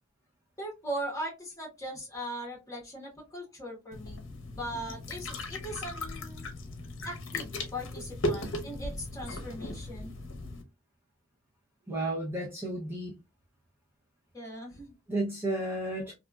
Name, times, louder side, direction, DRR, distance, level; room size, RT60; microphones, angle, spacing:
voice 1, 0.6-4.2 4.5-6.5 7.0-10.1 14.3-14.9, equal, 15° left, 0 dB, 1.5 m, -39 dB
sound 1, 3.9-10.6, left 1 dB, 70° left, 0.8 m, -37 dB
voice 2, 11.9-13.1 15.1-16.1, right 1 dB, 10° right, -4 dB, 0.7 m, -32 dB
3.3 x 2.5 x 2.3 m, 0.23 s
head